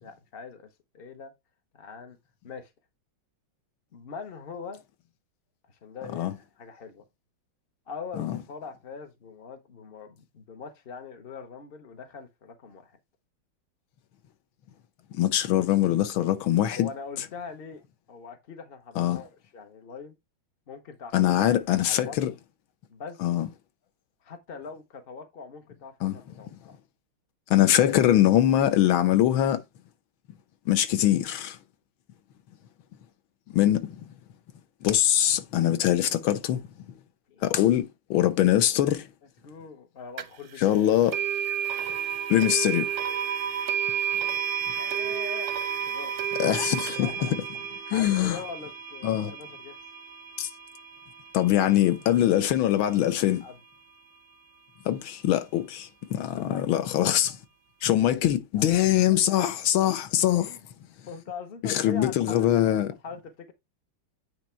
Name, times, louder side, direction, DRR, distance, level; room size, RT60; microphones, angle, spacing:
voice 1, 0.0-0.7 0.9-1.3 1.7-2.2 2.4-2.7 3.9-4.8 5.7-7.0 7.9-13.0 16.7-17.8 18.1-20.1 20.7-21.6 21.8-22.2 22.9-23.2 24.2-26.8 37.3-37.4 39.4-40.8 44.7-45.5 45.9-46.1 46.8-47.4 47.7-49.8 53.4-53.6 56.3-56.6 58.5-59.2 60.5-60.6 61.1-62.5 63.0-63.5, left 5 dB, 50° left, 0.7 m, -42 dB
voice 2, 15.1-16.9 19.0-19.2 21.1-22.3 23.2-23.5 26.0-26.2 27.5-29.6 30.7-31.6 33.5-33.9 34.8-36.6 37.4-39.1 40.6-41.1 42.3-42.9 46.4-47.1 47.9-48.4 49.0-49.3 50.4-50.5 51.3-53.4 54.8-57.4 57.8-60.6 61.6-62.9, left 12 dB, 75° left, 1.7 m, -23 dB
sound 1, 40.2-40.3 41.1-52.1, right 9 dB, 60° right, 0.7 m, -31 dB
9.1 x 3.1 x 4.3 m
omnidirectional pair, 2.2 m